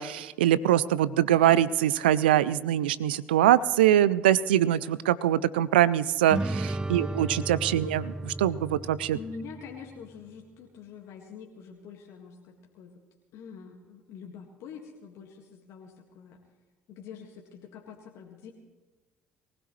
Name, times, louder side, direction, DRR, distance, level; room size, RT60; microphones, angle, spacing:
voice 1, 0.0-9.2, right 12 dB, 85° right, 19 dB, 0.4 m, -23 dB
sound 1, 6.3-9.9, right 2 dB, 15° right, 0.4 m, -34 dB
voice 2, 9.1-12.9 13.3-16.4 16.9-18.5, left 6 dB, 65° left, 0 dB, 1.8 m, -45 dB
23.0 x 16.0 x 3.2 m, 1.2 s
hypercardioid pair, 55°, 5 cm